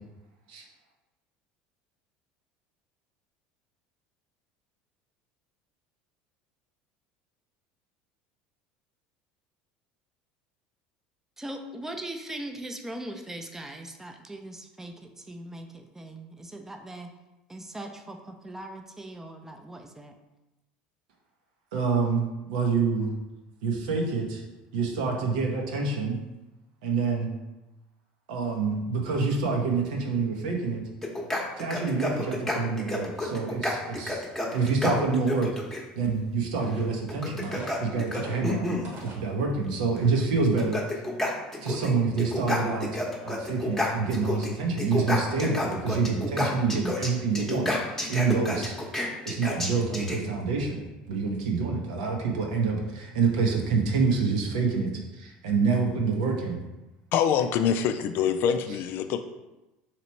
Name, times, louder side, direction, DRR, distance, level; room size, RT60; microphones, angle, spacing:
voice 1, 11.4-17.1 17.5-20.1, right 1 dB, 10° right, 4 dB, 0.5 m, -40 dB
voice 2, 21.7-23.1 23.6-24.4 24.7-26.2 26.8-27.3 28.3-30.8 31.6-34.2 34.5-35.5 36.0-38.8 39.0-40.8 41.6-48.7 49.2-56.6, right 4 dB, 85° right, 1 dB, 0.8 m, -27 dB
sound 1, 31.0-35.8 37.1-38.9 40.0-40.1 40.4-41.9 42.2-44.5 44.8-50.2, left 1 dB, 10° left, 0.9 m, -30 dB
sound 2, 36.8-36.9 37.4-39.3 39.9-40.0 40.6-40.8, right 1 dB, 50° right, 1.0 m, -43 dB
voice 3, 57.1-59.2, left 8 dB, 60° left, 8 dB, 0.3 m, -25 dB
2.9 x 2.9 x 4.4 m, 1.0 s
supercardioid pair, 90°, 4 cm